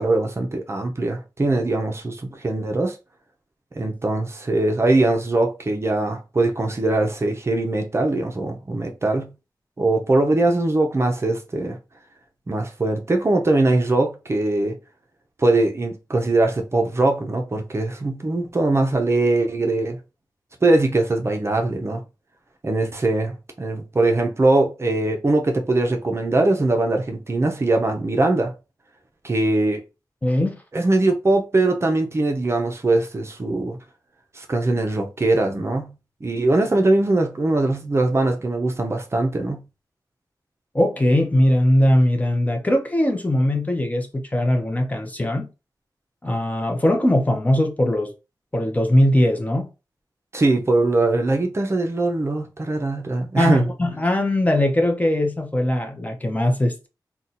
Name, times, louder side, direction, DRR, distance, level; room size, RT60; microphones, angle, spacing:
voice 1, 0.0-3.0 3.7-9.3 9.8-11.8 12.5-14.8 15.4-20.0 20.6-22.0 22.6-28.5 29.2-29.8 30.7-33.8 34.4-35.9 36.2-39.6 50.3-53.6, right 2 dB, 35° right, 0.5 m, -21 dB
voice 2, 30.2-30.6 40.7-45.5 46.2-48.1 48.5-49.7 53.4-56.9, left 1 dB, 20° left, 0.6 m, -20 dB
2.6 x 2.2 x 4.0 m
wide cardioid pair, 100°, 8 cm